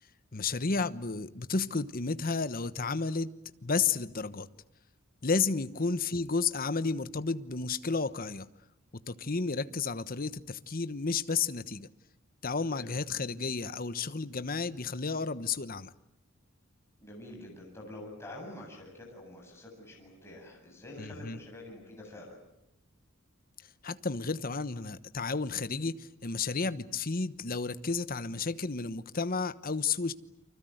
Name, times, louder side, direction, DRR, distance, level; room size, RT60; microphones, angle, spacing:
voice 1, 0.3-3.3 3.6-4.5 5.2-8.5 9.1-11.9 12.4-15.9 21.0-21.4 23.8-30.1, left 4 dB, 45° left, 1.1 m, -32 dB
voice 2, 17.0-22.4, left 1 dB, 15° left, 7.9 m, -47 dB
30.0 x 25.0 x 8.0 m
head